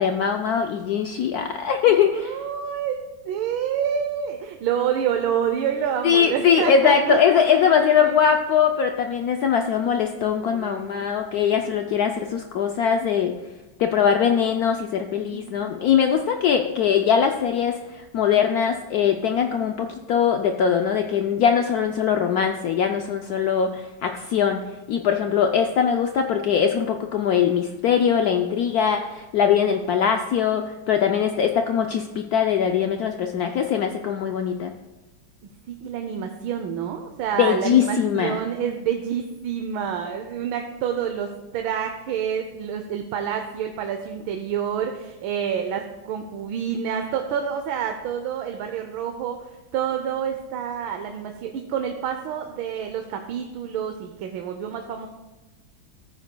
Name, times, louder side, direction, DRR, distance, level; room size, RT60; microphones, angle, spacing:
voice 1, 0.0-2.4 6.0-13.3 13.8-24.6 24.9-34.7 37.4-38.4, left 7 dB, 80° left, 5 dB, 0.8 m, -21 dB
voice 2, 1.9-8.2 10.4-11.1 11.5-11.6 15.2-15.8 35.7-55.1, right 8 dB, 85° right, 5 dB, 1.5 m, -28 dB
15.0 x 8.9 x 2.2 m, 1.1 s
omnidirectional pair, 2.2 m